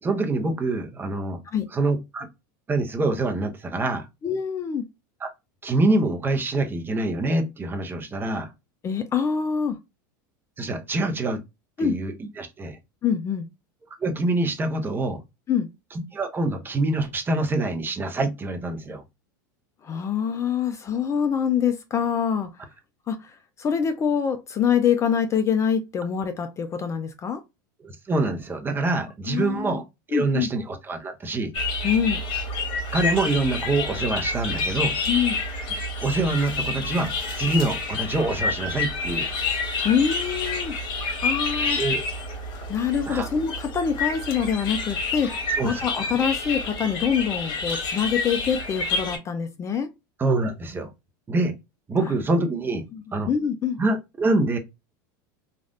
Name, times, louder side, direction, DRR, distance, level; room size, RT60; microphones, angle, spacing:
voice 1, 0.0-1.4 1.7-2.3 2.7-4.1 5.2-5.3 5.6-8.5 10.6-11.4 11.8-12.8 14.0-15.2 15.9-19.0 27.8-29.8 30.1-31.5 32.9-34.9 36.0-37.1 37.3-39.3 41.8-42.0 42.6-42.7 43.1-43.3 45.6-45.8 50.2-50.9 51.3-51.5 51.9-52.8 53.1-53.3 53.8-54.6, right 2 dB, 20° right, 0.8 m, -25 dB
voice 2, 4.2-4.8 8.8-9.8 11.8-12.0 13.0-13.5 15.5-15.7 19.8-22.5 23.1-27.4 29.3-29.8 30.1-30.5 31.8-32.2 35.1-35.4 39.8-40.8 41.2-41.8 42.7-49.9 52.9-53.8, left 7 dB, 30° left, 0.4 m, -25 dB
sound 1, 31.5-49.2, left 3 dB, 50° left, 1.5 m, -28 dB
3.2 x 2.5 x 2.5 m
supercardioid pair, 110°, 11 cm